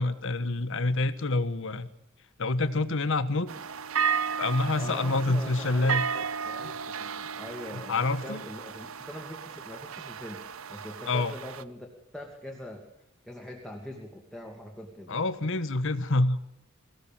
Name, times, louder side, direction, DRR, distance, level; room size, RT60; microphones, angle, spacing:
voice 1, 0.0-1.9 2.4-3.5 4.4-6.0 6.6-6.7 7.9-8.4 11.1-11.3 15.1-16.4, left 2 dB, 65° left, 13 dB, 1.2 m, -27 dB
sound 1, 3.5-11.6, right 7 dB, 65° right, 0.7 m, -34 dB
voice 2, 4.8-5.9 6.5-11.9 12.1-12.9 13.2-15.1, left 1 dB, ahead, 0 dB, 2.3 m, -42 dB
23.5 x 16.0 x 7.4 m, 0.87 s
head